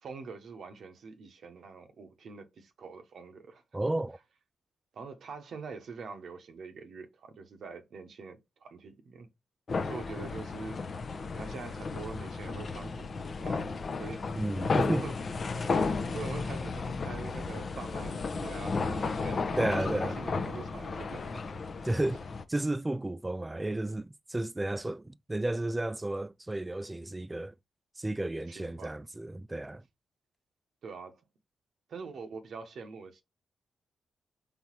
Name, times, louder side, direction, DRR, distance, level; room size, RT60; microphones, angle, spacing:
voice 1, 0.0-3.6 4.9-9.3 9.8-10.9 11.3-15.2 15.6-19.6 19.9-21.3 28.5-28.9 30.8-31.2 31.9-33.2, right 4 dB, 70° right, 0.7 m, -45 dB
voice 2, 3.7-4.2 14.4-15.1 19.6-20.2 21.8-22.2 22.5-27.5 28.0-29.8, right 2 dB, 20° right, 0.3 m, -32 dB
sound 1, 9.7-22.4, left 4 dB, 55° left, 0.6 m, -33 dB
4.1 x 3.4 x 3.0 m
supercardioid pair, 45°, 0 cm